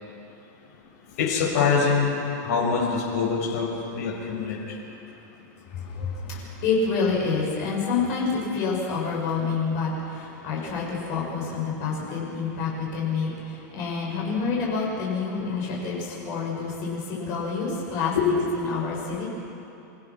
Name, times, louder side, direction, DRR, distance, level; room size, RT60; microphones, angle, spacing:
voice 1, 1.2-2.2 2.4-4.8 18.1-18.3, left 5 dB, 55° left, -3 dB, 6.6 m, -24 dB
voice 2, 5.7-18.2 18.5-19.3, left 5 dB, 35° left, -4 dB, 6.9 m, -28 dB
29.0 x 16.5 x 6.1 m, 2.8 s
supercardioid pair, 175°, 10 cm